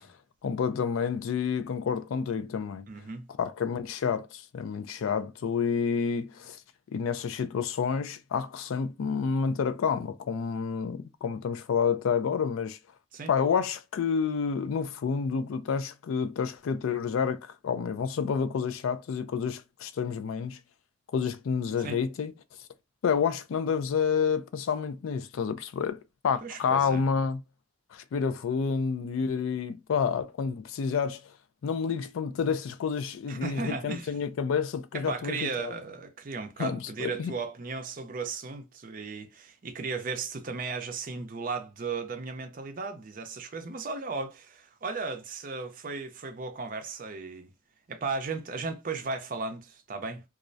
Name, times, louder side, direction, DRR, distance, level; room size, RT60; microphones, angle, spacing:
voice 1, 0.4-2.9 3.4-6.6 6.9-12.8 13.3-20.6 21.1-22.3 23.0-27.4 27.9-31.3 31.6-35.7 36.6-37.3, left 6 dB, 85° left, 0.3 m, -29 dB
voice 2, 2.9-3.2 13.1-13.3 21.8-22.0 26.4-27.0 33.3-34.1 34.9-47.5 47.9-50.2, right 4 dB, 40° right, 0.5 m, -35 dB
2.4 x 2.0 x 2.5 m
head